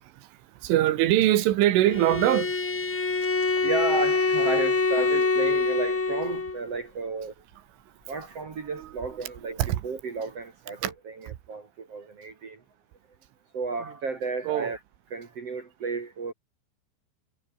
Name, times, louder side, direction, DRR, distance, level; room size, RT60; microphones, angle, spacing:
voice 1, 0.0-2.6 8.7-8.9 9.2-9.3 9.6-9.8 10.8-10.9 13.8-13.9 14.5-14.7, right 14 dB, 85° right, 4.2 m, -23 dB
Bowed string instrument, 1.9-6.6, left 3 dB, 35° left, 1.0 m, -25 dB
voice 2, 3.6-7.3 8.1-12.6 13.5-14.8 15.1-16.3, right 4 dB, 45° right, 2.2 m, -33 dB
omnidirectional pair, 5.5 m